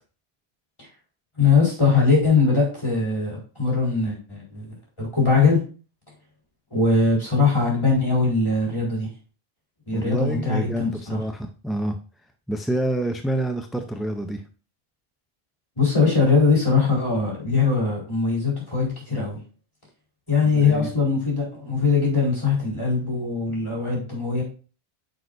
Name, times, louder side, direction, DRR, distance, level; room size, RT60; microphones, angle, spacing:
voice 1, 1.4-5.6 6.7-9.1 9.9-11.2 15.8-19.4 20.3-24.4, left 4 dB, 25° left, -5 dB, 4.2 m, -21 dB
voice 2, 9.9-12.0 12.5-14.4 20.5-20.9, right 1 dB, ahead, 5 dB, 0.4 m, -27 dB
9.4 x 6.2 x 2.6 m, 0.37 s
omnidirectional pair, 1.0 m